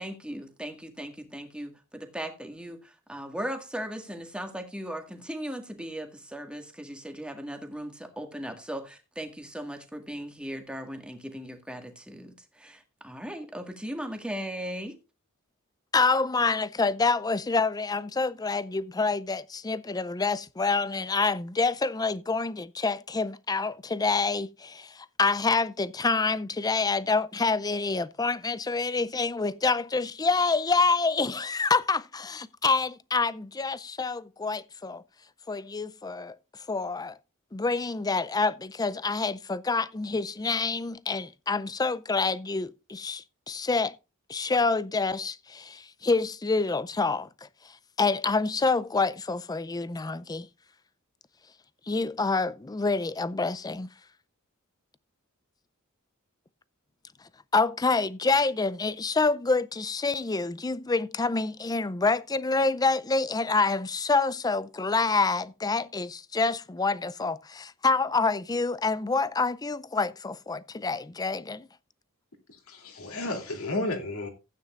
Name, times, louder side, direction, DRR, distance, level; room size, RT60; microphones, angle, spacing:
voice 1, 0.0-15.0, equal, 5° right, 1.8 m, -38 dB
voice 2, 15.9-35.0 35.5-36.4 36.7-37.1 37.5-43.9 44.3-47.5 48.0-50.5 51.9-53.9 57.5-71.7, left 3 dB, 20° left, 0.4 m, -27 dB
voice 3, 72.5-74.3, left 2 dB, 75° left, 3.0 m, -32 dB
15.0 x 9.4 x 2.5 m
head